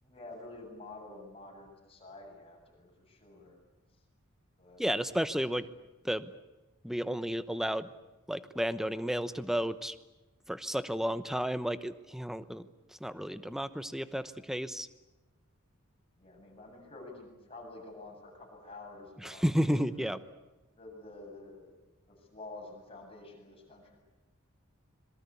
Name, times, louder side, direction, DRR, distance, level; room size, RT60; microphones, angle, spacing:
voice 1, 0.0-3.5 4.6-4.8 16.2-20.2 20.7-21.7 22.1-24.0, left 2 dB, 25° left, 0 dB, 7.8 m, -49 dB
voice 2, 4.8-5.7 6.0-6.3 6.8-7.9 8.3-10.0 10.5-12.7 13.0-14.9 19.2-20.2, equal, ahead, 13 dB, 0.9 m, -32 dB
26.5 x 23.0 x 8.4 m, 1.1 s
head